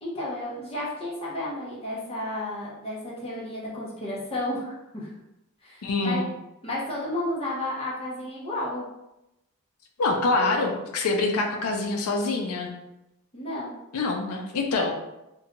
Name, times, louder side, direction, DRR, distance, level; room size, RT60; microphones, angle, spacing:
voice 1, 0.0-5.1 5.6-6.3 6.6-8.8 13.3-13.8, left 1 dB, 25° left, -6 dB, 0.7 m, -32 dB
voice 2, 5.8-6.3 10.0-12.7 13.9-14.9, left 3 dB, 80° left, 2 dB, 0.4 m, -25 dB
2.6 x 2.2 x 2.8 m, 0.92 s
head